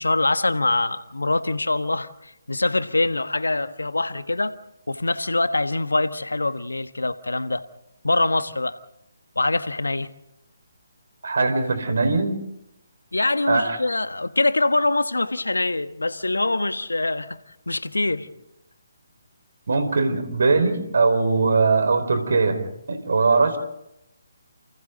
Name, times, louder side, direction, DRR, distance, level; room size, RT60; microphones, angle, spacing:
voice 1, 0.0-4.6 4.9-7.6 8.0-8.8 9.3-10.1 13.1-17.4 17.7-18.3, left 2 dB, 80° left, 1.4 m, -24 dB
voice 2, 11.2-12.4 13.5-13.8 19.7-23.6, right 4 dB, 65° right, 4.6 m, -21 dB
29.5 x 29.0 x 3.9 m
figure-of-eight pair, 145°, 0 cm